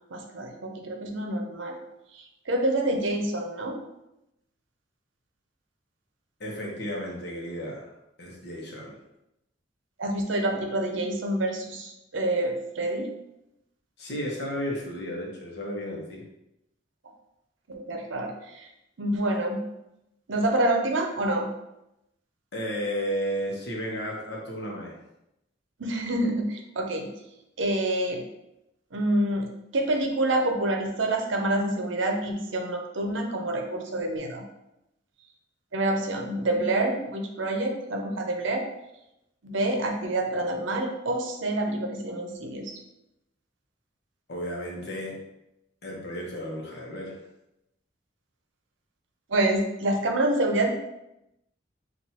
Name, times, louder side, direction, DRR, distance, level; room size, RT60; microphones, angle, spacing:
voice 1, 0.1-1.8 2.1-3.8 10.0-13.1 17.7-18.7 19.0-19.6 20.3-21.5 25.8-27.1 27.6-28.2 28.9-29.5 29.7-34.4 35.7-38.6 39.4-42.8 49.3-50.7, right 1 dB, 75° right, 3 dB, 0.7 m, -27 dB
voice 2, 6.4-7.9 8.2-9.0 14.0-16.2 22.5-25.0 44.3-45.2 45.8-47.2, equal, 55° left, -2 dB, 1.1 m, -33 dB
6.0 x 2.5 x 2.9 m, 0.88 s
head